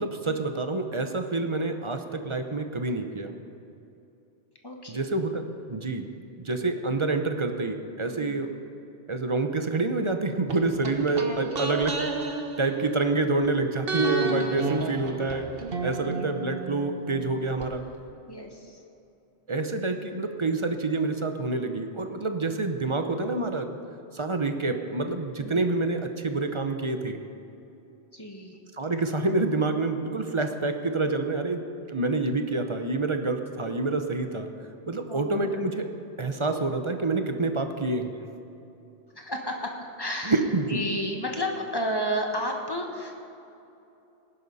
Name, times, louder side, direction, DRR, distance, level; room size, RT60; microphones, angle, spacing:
voice 1, 0.0-3.4 4.9-5.4 5.7-6.1 6.4-8.5 9.1-12.0 12.6-15.5 15.8-17.8 19.5-23.8 24.1-27.2 28.8-31.6 31.9-34.5 34.9-35.9 36.2-38.1 40.2-40.8, right 3 dB, 30° right, 6 dB, 0.7 m, -27 dB
voice 2, 4.6-5.0 8.1-8.4 11.3-11.4 16.0-16.3 18.3-18.8 25.4-25.6 28.1-28.6 35.1-35.6 39.1-40.4 40.7-43.2, equal, 20° left, 1 dB, 1.4 m, -33 dB
sound 1, 10.5-13.5 13.9-17.7 17.9-18.0, right 3 dB, 55° right, 1.2 m, -32 dB
19.0 x 11.0 x 4.1 m, 2.8 s
omnidirectional pair, 1.2 m